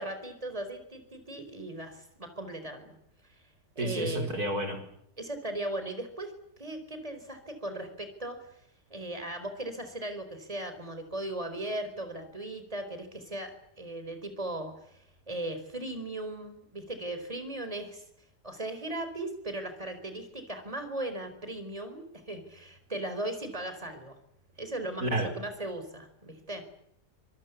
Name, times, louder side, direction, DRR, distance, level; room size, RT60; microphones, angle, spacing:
voice 1, 0.0-2.9 3.8-4.5 5.2-6.3 6.6-8.5 8.9-18.0 18.4-24.2 24.6-26.6, right 1 dB, 20° right, 9 dB, 4.5 m, -38 dB
voice 2, 3.8-4.8 25.0-25.3, right 1 dB, 65° right, 5 dB, 5.5 m, -30 dB
26.0 x 21.5 x 8.4 m, 0.73 s
omnidirectional pair, 1.7 m